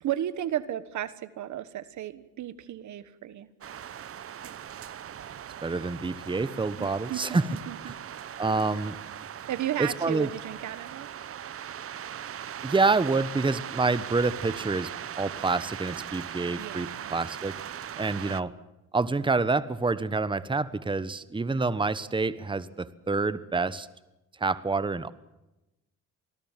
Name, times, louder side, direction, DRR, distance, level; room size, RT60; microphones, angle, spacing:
voice 1, 0.0-3.5 6.8-8.0 8.5-8.7 9.5-11.1 16.6-17.1, right 12 dB, 75° right, 15 dB, 1.4 m, -34 dB
sound 1, 3.6-18.4, right 9 dB, 50° right, 0.8 m, -39 dB
voice 2, 5.6-7.4 8.4-8.9 9.8-10.3 12.6-14.9 15.2-17.6 18.0-18.5 18.9-23.9 24.4-25.1, right 3 dB, 15° right, 15 dB, 1.1 m, -27 dB
26.0 x 19.5 x 7.5 m, 0.97 s
cardioid pair, 90°, 30 cm